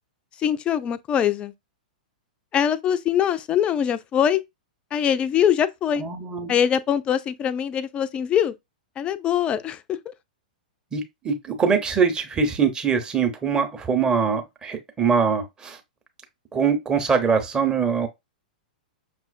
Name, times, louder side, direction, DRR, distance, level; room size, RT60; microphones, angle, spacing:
voice 1, 0.4-1.5 2.5-4.4 4.9-6.0 6.5-8.5 9.0-10.1, left 9 dB, 25° left, 0.3 m, -23 dB
voice 2, 6.0-6.6 10.9-15.8 16.5-18.1, right 6 dB, 15° right, 0.8 m, -23 dB
5.8 x 2.4 x 2.3 m
figure-of-eight pair, 105°, 5 cm